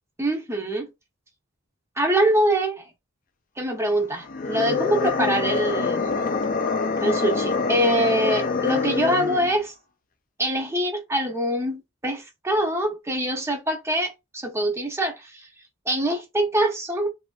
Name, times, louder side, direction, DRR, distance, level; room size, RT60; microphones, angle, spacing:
voice 1, 0.2-0.9 2.0-2.8 3.6-6.1 7.0-9.7 10.4-15.4 15.9-17.1, right 1 dB, 15° right, 0.7 m, -24 dB
sound 1, 4.2-9.6, left 4 dB, 40° left, 0.4 m, -25 dB
3.2 x 2.5 x 2.3 m
head